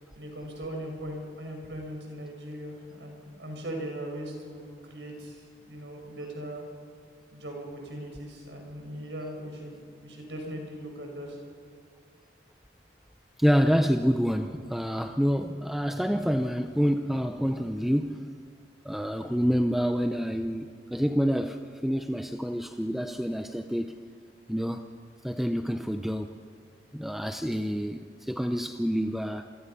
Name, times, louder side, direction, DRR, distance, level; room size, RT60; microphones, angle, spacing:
voice 1, 0.2-5.4 5.7-6.6 7.3-11.4, right 1 dB, 80° right, 1 dB, 5.9 m, -39 dB
voice 2, 13.4-18.3 18.8-24.0 24.5-24.8 25.2-26.3 26.9-29.5, equal, ahead, 6 dB, 0.7 m, -27 dB
28.0 x 22.0 x 5.7 m, 2.3 s
head